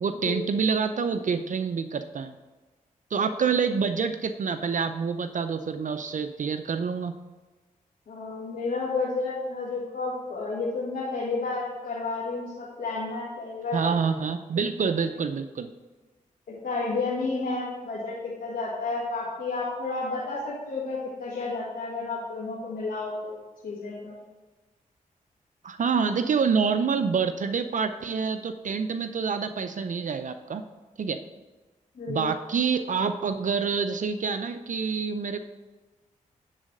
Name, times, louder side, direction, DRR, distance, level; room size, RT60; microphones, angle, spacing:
voice 1, 0.0-2.4 3.1-7.2 13.7-15.7 25.6-30.6 31.0-31.2 32.1-35.4, right 5 dB, 60° right, 9 dB, 0.5 m, -27 dB
voice 2, 8.1-13.9 16.5-23.4 23.6-24.2 31.9-32.2, left 3 dB, 85° left, -6 dB, 1.7 m, -31 dB
10.0 x 4.1 x 6.5 m, 1.2 s
cardioid pair, 55°, 15 cm